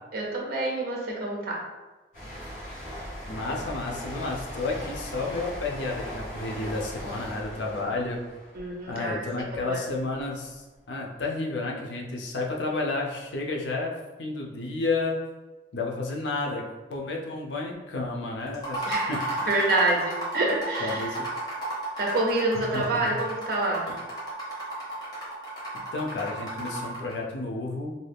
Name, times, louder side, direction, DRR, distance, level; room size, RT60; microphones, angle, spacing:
voice 1, 0.1-1.6 8.5-9.2 9.6-9.8 18.9-19.2 19.5-21.2 22.0-23.9, right 2 dB, 55° right, -1 dB, 0.6 m, -27 dB
sound 1, 2.1-9.6 9.9-10.2, equal, 45° left, 1.0 m, -39 dB
voice 2, 3.3-8.2 8.9-13.9 14.2-15.2 15.7-16.6 16.9-19.6 20.8-21.3 22.5-23.1 23.9-24.0 25.9-27.9, left 3 dB, 80° left, 0 dB, 0.5 m, -31 dB
sound 2, 18.5-27.1, right 1 dB, 25° left, 0.9 m, -33 dB
2.6 x 2.3 x 3.3 m, 1.1 s
head